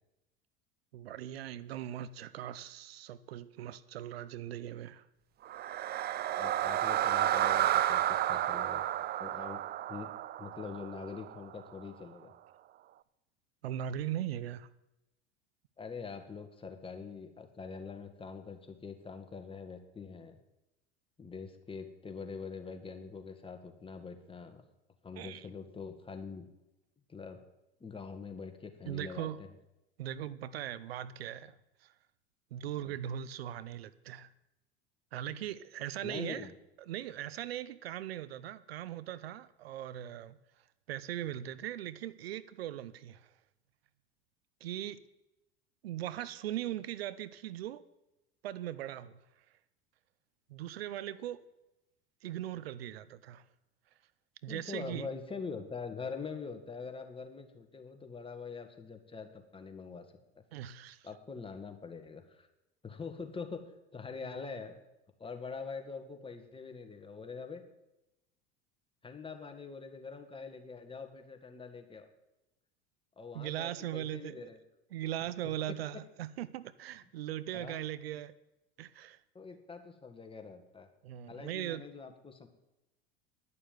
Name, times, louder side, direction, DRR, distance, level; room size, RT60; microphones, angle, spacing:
voice 1, 0.9-5.0 13.6-14.7 25.2-25.4 28.9-29.4 30.0-31.9 32.5-34.3 35.1-36.5 36.9-40.4 40.9-43.3 44.6-45.0 45.8-47.8 48.4-49.2 50.5-51.4 52.2-53.4 54.4-55.1 60.5-61.1 73.3-74.5 74.9-78.3 78.8-79.2 81.0-81.8, right 12 dB, 90° right, 0.7 m, -39 dB
sound 1, 5.4-11.6, right 12 dB, 35° right, 0.5 m, -31 dB
voice 2, 6.4-8.8 9.2-9.6 9.9-10.1 10.4-12.3 15.8-20.4 21.2-24.6 25.0-26.5 27.1-27.4 27.8-29.5 32.8-33.0 36.0-36.5 54.5-60.4 61.0-62.5 62.8-63.6 63.9-64.8 65.2-67.6 69.0-72.1 73.2-74.6 75.2-75.3 75.7-76.0 77.5-77.9 79.3-80.9 81.3-82.5, left 5 dB, 20° left, 1.9 m, -44 dB
11.0 x 6.8 x 9.4 m
hypercardioid pair, 90°, 29 cm